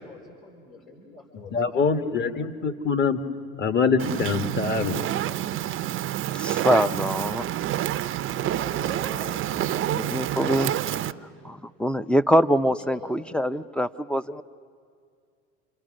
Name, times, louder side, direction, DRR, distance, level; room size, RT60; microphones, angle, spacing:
voice 1, 0.0-2.1 8.2-11.2 12.6-13.2, left 4 dB, 80° left, 5.0 m, -44 dB
voice 2, 1.3-3.2 3.6-5.1, left 5 dB, 35° left, 1.5 m, -24 dB
Fire, 4.0-11.1, right 12 dB, 40° right, 0.6 m, -28 dB
voice 3, 6.3-7.4 9.3-9.4 9.6-10.7 11.4-14.4, equal, 5° left, 0.5 m, -24 dB
29.5 x 26.5 x 6.4 m
hypercardioid pair, 85°, 32 cm